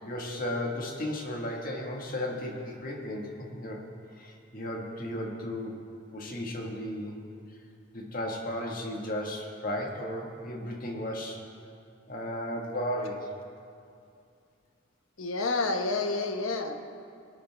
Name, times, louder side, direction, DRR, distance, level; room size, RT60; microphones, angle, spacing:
voice 1, 0.0-3.8 4.1-5.8 6.1-7.2 7.9-11.4 12.1-13.3, left 1 dB, 45° left, 0 dB, 1.6 m, -35 dB
voice 2, 15.2-16.7, left 3 dB, 90° left, 5 dB, 1.1 m, -29 dB
19.5 x 9.4 x 3.4 m, 2.5 s
head